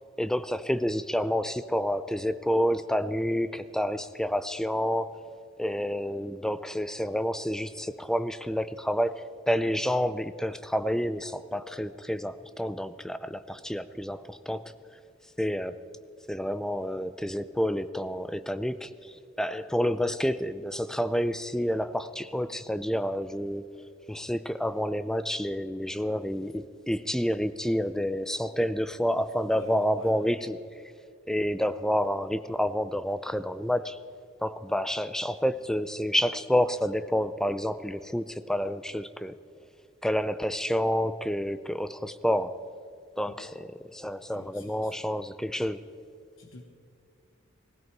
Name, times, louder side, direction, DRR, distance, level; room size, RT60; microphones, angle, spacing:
voice 1, 0.2-5.2 5.6-14.7 15.4-15.9 16.3-23.7 24.1-30.6 31.3-34.0 34.4-39.3 40.0-42.7 43.2-45.8, equal, 5° left, 13 dB, 0.4 m, -29 dB
voice 2, 29.6-30.1 43.2-43.5 44.3-44.9 46.4-46.6, left 4 dB, 70° left, 1 dB, 1.3 m, -46 dB
18.0 x 16.5 x 4.7 m, 2.3 s
head